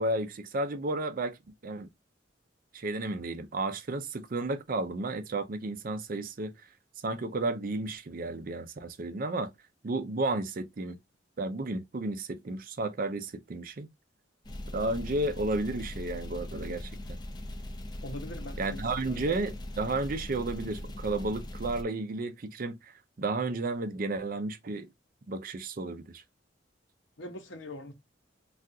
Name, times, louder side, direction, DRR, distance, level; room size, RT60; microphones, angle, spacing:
voice 1, 0.0-1.4 1.6-1.9 2.7-6.5 7.0-9.5 9.8-11.0 11.4-13.9 14.7-17.2 18.6-22.9 23.2-24.9 25.3-26.2, right 2 dB, 45° right, 0.5 m, -32 dB
sound 1, 14.4-21.8, left 1 dB, 20° left, 0.5 m, -40 dB
voice 2, 18.0-19.3 27.2-27.9, left 1 dB, 75° left, 0.9 m, -42 dB
3.5 x 2.4 x 2.6 m
head